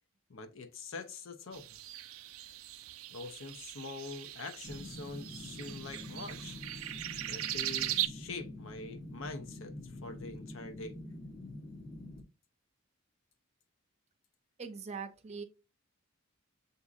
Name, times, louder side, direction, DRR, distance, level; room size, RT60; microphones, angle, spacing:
voice 1, 0.3-1.7 3.1-6.6 7.3-11.0, left 3 dB, 70° left, 0.6 m, -44 dB
sound 1, 1.5-8.1, right 14 dB, 90° right, 0.4 m, -39 dB
sound 2, 4.6-12.2, left 1 dB, 25° left, 0.6 m, -46 dB
voice 2, 14.6-15.4, right 5 dB, 35° right, 0.5 m, -41 dB
7.1 x 2.7 x 2.4 m
head